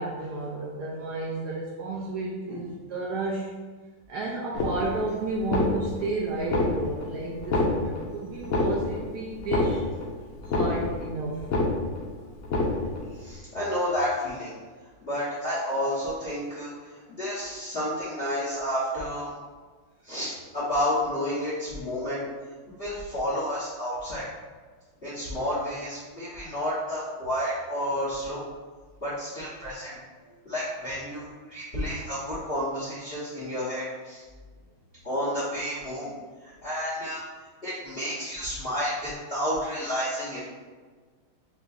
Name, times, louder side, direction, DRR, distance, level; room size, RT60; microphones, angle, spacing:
voice 1, 0.0-3.5 4.1-9.9 10.4-11.4 30.2-30.4, right 3 dB, 80° right, -4 dB, 0.9 m, -32 dB
sound 1, 4.5-5.1 5.4-6.1 6.4-7.1 7.4-8.1 8.4-9.1 9.4-10.1 10.4-11.1 11.4-12.1 12.4-13.1, left 2 dB, 85° left, 0.7 m, -26 dB
voice 2, 13.2-14.5 15.0-16.7 17.2-19.3 20.0-22.2 22.8-24.3 25.0-28.4 29.0-30.0 30.4-34.2 35.0-36.1 36.4-37.2 37.6-40.4, equal, 35° left, -8 dB, 1.0 m, -30 dB
6.8 x 2.4 x 2.5 m, 1.4 s
omnidirectional pair, 2.3 m